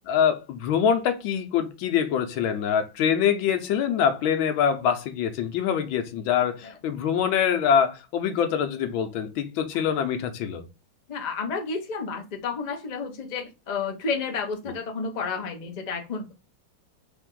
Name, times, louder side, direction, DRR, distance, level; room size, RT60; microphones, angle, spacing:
voice 1, 0.1-10.7, left 8 dB, 80° left, 1.5 m, -24 dB
voice 2, 11.1-16.4, left 5 dB, 65° left, 0.4 m, -31 dB
3.5 x 3.4 x 3.7 m
omnidirectional pair, 2.1 m